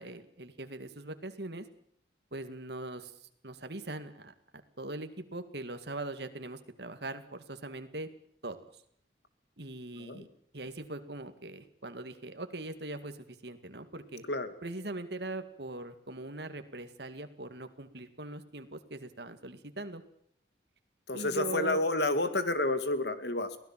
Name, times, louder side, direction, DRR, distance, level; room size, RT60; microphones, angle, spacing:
voice 1, 0.0-1.6 2.3-4.3 4.8-8.1 8.4-8.8 9.6-10.3 10.5-14.2 14.6-20.0 21.1-21.8, right 2 dB, 65° right, 8 dB, 2.2 m, -41 dB
voice 2, 21.1-23.6, left 2 dB, 65° left, 10 dB, 2.2 m, -30 dB
23.5 x 17.0 x 7.5 m, 0.67 s
head